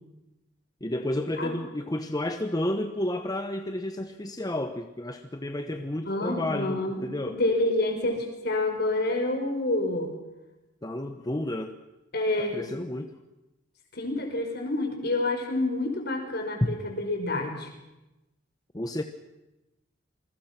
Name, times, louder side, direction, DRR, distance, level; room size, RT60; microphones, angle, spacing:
voice 1, 0.8-7.4 10.8-11.8 12.4-13.1 16.6-16.8 18.7-19.0, left 1 dB, 20° left, 6 dB, 1.1 m, -31 dB
voice 2, 6.1-10.1 12.1-12.6 13.9-17.7, left 2 dB, 60° left, 4 dB, 5.2 m, -28 dB
28.0 x 21.5 x 6.0 m, 0.99 s
head